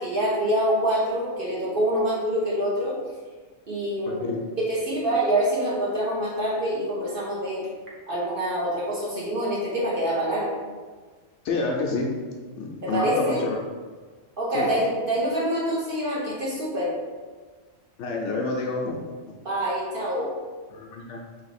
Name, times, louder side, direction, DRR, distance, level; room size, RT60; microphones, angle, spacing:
voice 1, 0.0-2.9 3.7-4.3 4.6-7.6 8.1-10.6 12.8-13.4 14.4-16.9 19.4-20.3, right 1 dB, 45° right, -6 dB, 1.1 m, -26 dB
voice 2, 4.1-4.4 11.4-12.1 12.6-13.7 14.5-14.8 18.0-19.0 20.7-21.2, left 3 dB, 70° left, 0 dB, 0.8 m, -28 dB
3.1 x 2.8 x 4.1 m, 1.4 s
omnidirectional pair, 1.4 m